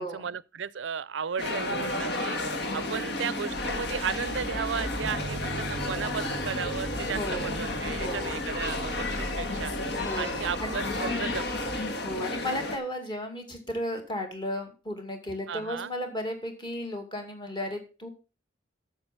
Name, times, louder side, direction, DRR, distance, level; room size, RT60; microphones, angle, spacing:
voice 1, 0.0-2.4 2.7-9.7 10.2-11.7 15.5-15.9, right 7 dB, 70° right, 0.5 m, -34 dB
sound 1, 1.4-12.8, left 2 dB, 60° left, 1.6 m, -32 dB
sound 2, 3.5-11.8, equal, 90° left, 2.4 m, -41 dB
sound 3, 5.0-10.5, right 2 dB, 15° right, 1.0 m, -42 dB
voice 2, 7.1-7.6 7.9-8.4 10.0-10.8 11.0-11.3 12.0-18.1, left 1 dB, 25° left, 2.4 m, -35 dB
8.8 x 7.4 x 5.8 m
head